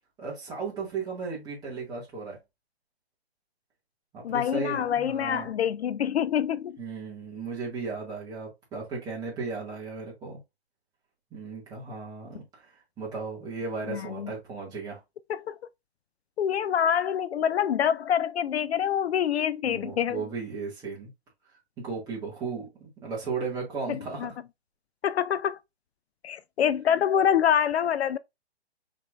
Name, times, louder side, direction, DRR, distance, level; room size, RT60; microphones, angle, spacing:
voice 1, 0.2-2.4 4.1-5.5 6.8-10.4 11.3-15.0 19.6-21.1 21.8-24.3, right 4 dB, 10° right, 1.8 m, -35 dB
voice 2, 4.2-6.8 13.9-14.3 15.3-15.6 16.4-20.2 23.9-24.3 25.0-25.6 26.2-28.2, left 9 dB, 70° left, 0.5 m, -26 dB
5.8 x 3.6 x 2.4 m
hypercardioid pair, 155°, 33 cm